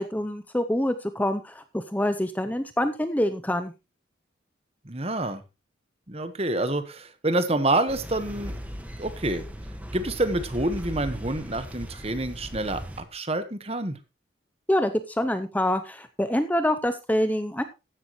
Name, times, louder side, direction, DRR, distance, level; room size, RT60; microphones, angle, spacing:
voice 1, 0.0-3.7 14.7-17.6, left 1 dB, 10° left, 10 dB, 0.6 m, -26 dB
voice 2, 4.8-5.4 6.1-8.6 9.0-9.4 9.9-14.0, right 2 dB, 30° right, 10 dB, 1.3 m, -27 dB
sound 1, 7.9-13.0, equal, 10° right, 1.5 m, -38 dB
14.5 x 10.5 x 3.1 m, 0.27 s
head